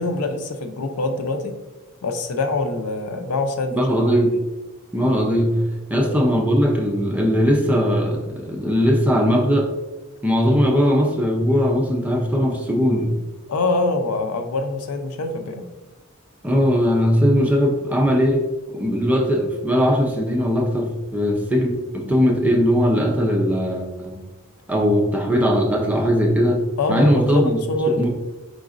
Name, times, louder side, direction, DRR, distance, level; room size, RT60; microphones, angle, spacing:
voice 1, 0.0-1.5 2.0-4.1 6.0-6.2 13.5-15.7 26.8-28.1, left 2 dB, 90° left, 7 dB, 0.5 m, -24 dB
voice 2, 3.7-4.4 4.9-9.7 10.2-13.2 16.4-18.5 18.7-24.2 24.7-27.6 28.0-28.1, equal, 5° right, 1 dB, 0.5 m, -19 dB
5.0 x 3.7 x 2.5 m, 1.1 s
head